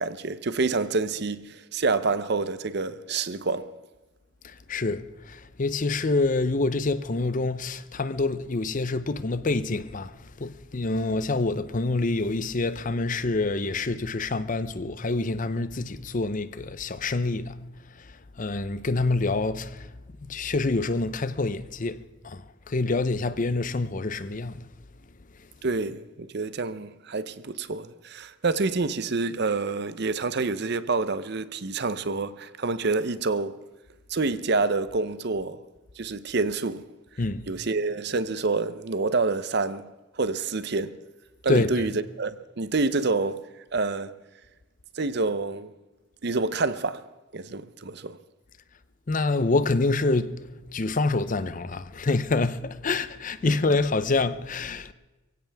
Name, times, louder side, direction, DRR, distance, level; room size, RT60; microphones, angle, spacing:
voice 1, 0.0-3.7 25.6-33.6 34.1-35.6 36.0-36.8 37.5-39.9 40.2-41.0 41.4-43.5 43.7-44.2 45.0-45.7 46.2-47.0 47.3-48.2 53.4-53.5, right 3 dB, 55° right, 0.7 m, -27 dB
voice 2, 4.4-17.6 18.0-18.1 18.4-19.9 20.3-24.7 37.2-37.4 41.5-41.9 49.1-50.4 50.7-54.9, left 3 dB, 40° left, 0.7 m, -27 dB
23.0 x 16.0 x 3.5 m
head